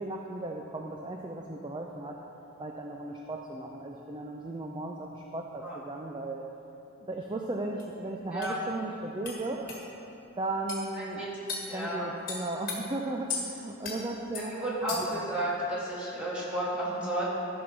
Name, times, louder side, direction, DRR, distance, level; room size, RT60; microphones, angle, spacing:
voice 1, 0.0-2.2 2.6-6.5 7.0-9.7 10.4-11.2 11.7-14.5 14.8-15.2, right 2 dB, 20° right, 0 dB, 0.5 m, -36 dB
sound 1, 7.8-7.9 8.4-8.5 9.2-9.4 9.7-9.8 10.7-10.8 11.5-11.7 12.3-12.8 13.3-13.5 13.8-14.0 14.3-14.5 14.9-15.2, left 4 dB, 40° left, 1.7 m, -36 dB
voice 2, 10.9-11.3 11.7-12.0 14.4-17.2, right 1 dB, 5° right, -9 dB, 2.3 m, -32 dB
13.0 x 6.1 x 5.3 m, 2.9 s
head